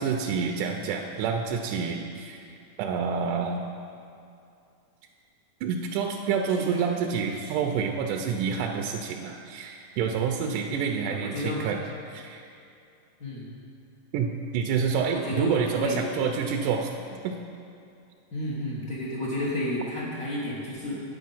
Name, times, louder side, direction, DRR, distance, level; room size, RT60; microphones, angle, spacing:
voice 1, 0.0-2.4 2.8-3.6 5.6-11.8 12.1-12.4 14.1-16.9 17.2-17.4, right 6 dB, 80° right, 2 dB, 2.0 m, -28 dB
voice 2, 10.4-11.7 13.2-13.5 14.9-16.1 18.3-21.0, left 1 dB, 55° left, -9 dB, 1.0 m, -32 dB
9.3 x 7.9 x 5.5 m, 2.5 s
omnidirectional pair, 3.7 m